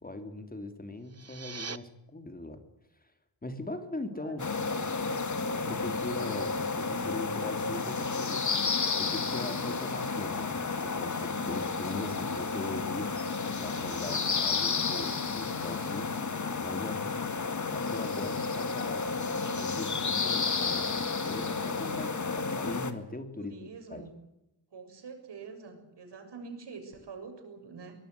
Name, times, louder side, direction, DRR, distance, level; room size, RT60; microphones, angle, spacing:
voice 1, 0.0-2.6 3.4-4.5 5.7-8.4 8.7-13.1 13.6-16.1 16.6-17.0 17.7-19.2 19.6-24.1, left 2 dB, 20° left, 7 dB, 2.9 m, -40 dB
sound 1, 0.9-1.8, right 6 dB, 35° right, 1.1 m, -41 dB
voice 2, 4.1-5.4 14.1-14.8 23.4-24.1 24.7-28.0, right 5 dB, 75° right, 5 dB, 7.2 m, -47 dB
sound 2, 4.4-22.9, left 4 dB, 45° left, 2.3 m, -31 dB
24.5 x 20.0 x 8.2 m, 0.88 s
wide cardioid pair, 145°, 42 cm